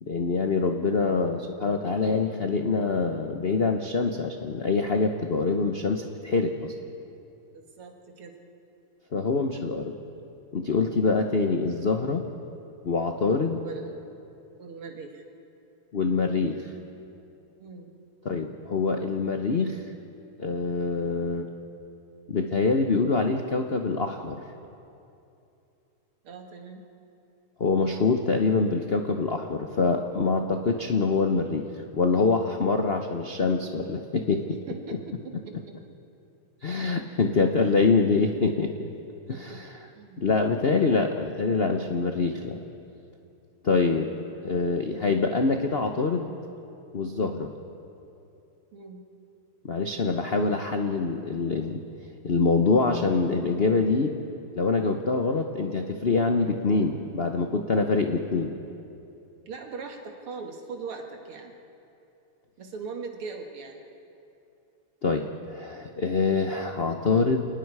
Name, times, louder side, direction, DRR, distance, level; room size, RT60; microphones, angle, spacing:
voice 1, 0.0-6.7 9.1-9.9 10.5-12.2 12.8-13.6 15.9-16.7 18.2-19.9 20.4-21.5 22.3-24.4 27.6-31.7 31.9-34.4 36.6-38.9 39.3-39.7 40.2-42.6 43.6-44.1 44.4-46.3 46.9-47.5 49.6-51.8 52.2-54.2 54.5-58.5 65.0-67.5, left 4 dB, 75° left, 5 dB, 0.5 m, -25 dB
voice 2, 7.5-8.3 13.6-14.0 14.6-15.2 17.6-17.9 26.2-26.8 34.5-35.8 39.3-39.6 40.0-40.3 44.5-44.6 48.7-49.0 59.5-61.5 62.6-63.8, right 4 dB, 75° right, 3 dB, 2.6 m, -40 dB
29.0 x 19.5 x 4.8 m, 2.7 s
omnidirectional pair, 2.4 m